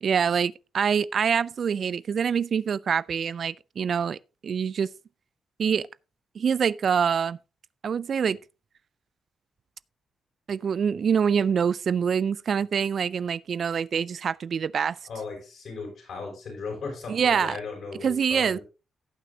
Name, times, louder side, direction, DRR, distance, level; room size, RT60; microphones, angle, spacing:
voice 1, 0.0-4.9 5.6-5.9 6.4-7.4 7.8-8.4 10.5-15.0 17.1-17.6 18.0-18.6, right 7 dB, 60° right, 0.3 m, -25 dB
voice 2, 15.1-18.6, left 4 dB, 70° left, 5.8 m, -37 dB
17.5 x 5.9 x 2.7 m
supercardioid pair, 60°, 0 cm